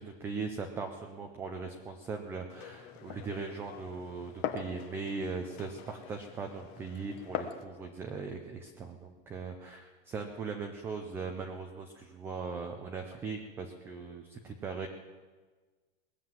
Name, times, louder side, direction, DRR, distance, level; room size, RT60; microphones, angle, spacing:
voice 1, 0.0-14.9, right 4 dB, 10° right, 4 dB, 0.3 m, -39 dB
Glass, 2.5-7.6, left 9 dB, 30° left, 0.9 m, -42 dB
19.5 x 7.6 x 7.3 m, 1.4 s
supercardioid pair, 170°, 30 cm